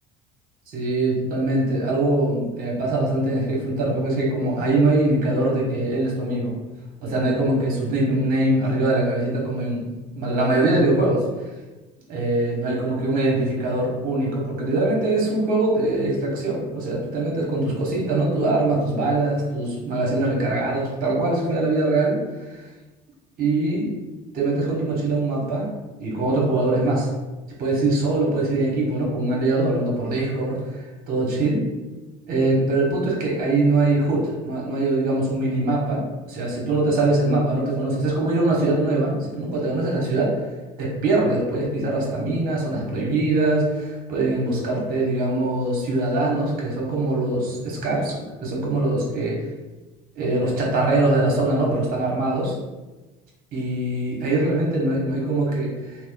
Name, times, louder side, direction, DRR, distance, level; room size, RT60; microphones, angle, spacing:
voice 1, 0.7-6.5 7.0-9.9 10.1-11.2 12.1-22.6 23.4-23.9 24.3-25.7 26.0-27.1 27.6-31.6 32.3-40.3 40.8-48.1 48.4-49.4 50.1-52.6 53.5-56.0, right 2 dB, 55° right, -3 dB, 1.0 m, -22 dB
2.9 x 2.0 x 2.2 m, 1.2 s
supercardioid pair, 85°, 18 cm